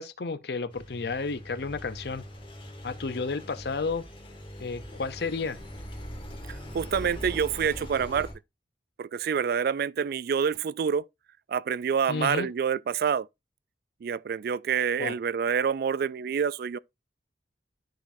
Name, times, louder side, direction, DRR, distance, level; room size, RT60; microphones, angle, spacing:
voice 1, 0.0-2.2 2.8-4.0 4.6-5.6 12.1-12.5 15.0-15.1, left 4 dB, 65° left, 0.7 m, -32 dB
Engine, 0.7-8.3, equal, 30° left, 2.0 m, -42 dB
voice 2, 6.5-8.3 9.0-11.0 11.5-13.3 14.0-16.8, right 7 dB, 55° right, 0.3 m, -27 dB
10.0 x 5.1 x 2.6 m
head